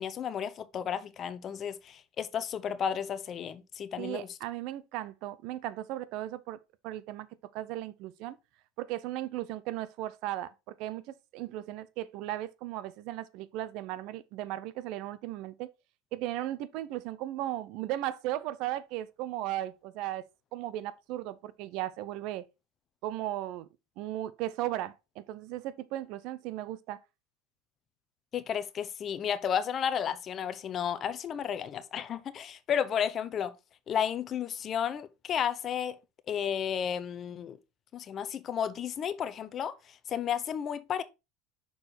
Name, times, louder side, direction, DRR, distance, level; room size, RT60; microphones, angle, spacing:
voice 1, 0.0-4.3 28.3-33.6 33.9-36.0 36.3-37.6 37.9-41.0, left 8 dB, 40° left, 0.8 m, -33 dB
voice 2, 4.0-6.6 6.8-7.3 7.5-8.4 8.8-11.0 11.3-15.7 16.1-22.4 23.0-23.7 24.0-27.0, right 14 dB, 60° right, 0.6 m, -36 dB
6.3 x 4.7 x 4.1 m
hypercardioid pair, 90°, 0 cm